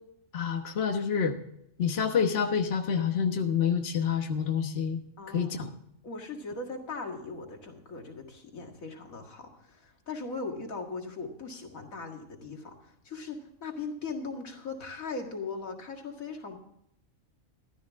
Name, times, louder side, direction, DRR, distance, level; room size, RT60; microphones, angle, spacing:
voice 1, 0.3-1.3 1.8-5.0 5.3-5.7, left 7 dB, 50° left, 5 dB, 1.4 m, -27 dB
voice 2, 5.2-5.5 6.0-16.6, left 4 dB, 90° left, 3 dB, 2.3 m, -39 dB
14.5 x 12.5 x 3.6 m, 0.75 s
omnidirectional pair, 1.4 m